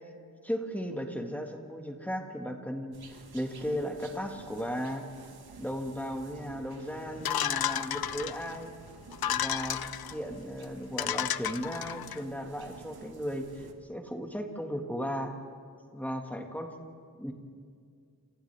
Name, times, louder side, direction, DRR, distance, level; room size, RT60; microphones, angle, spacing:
voice 1, 0.4-5.1 5.6-8.7 9.3-15.3 15.9-16.8 17.2-17.3, equal, 5° left, 3 dB, 1.7 m, -36 dB
sound 1, 2.9-13.7, right 5 dB, 85° right, 1.6 m, -51 dB
sound 2, 7.2-8.6 9.1-10.1 10.6-10.7 11.0-12.2, left 10 dB, 80° left, 0.6 m, -32 dB
29.0 x 28.5 x 3.4 m, 2.1 s
wide cardioid pair, 160°, 37 cm